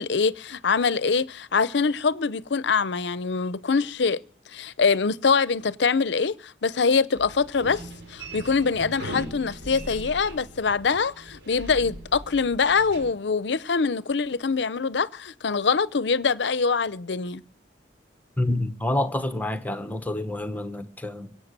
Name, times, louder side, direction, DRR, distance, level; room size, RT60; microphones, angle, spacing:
voice 1, 0.0-4.2 4.5-7.8 8.1-17.4, left 5 dB, 75° left, 0.6 m, -24 dB
sound 1, 7.1-13.1, right 1 dB, 75° right, 4.5 m, -40 dB
voice 2, 18.4-21.4, left 1 dB, 10° left, 1.0 m, -28 dB
24.0 x 8.4 x 6.7 m
head